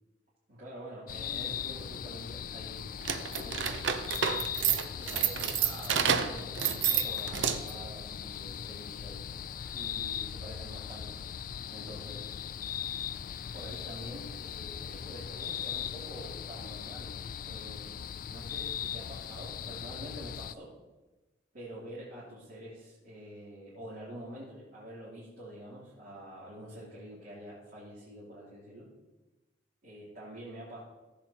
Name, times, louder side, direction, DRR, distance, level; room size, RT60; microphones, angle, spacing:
voice 1, 0.5-4.0 4.9-9.2 9.7-11.1 11.7-12.3 13.5-20.7 21.5-28.9 29.8-30.8, right 1 dB, 60° right, -10 dB, 3.0 m, -47 dB
sound 1, 1.1-20.5, left 9 dB, 50° left, 0.3 m, -39 dB
sound 2, 3.0-7.8, right 8 dB, 85° right, 0.6 m, -29 dB
15.0 x 7.5 x 2.9 m, 1.1 s
head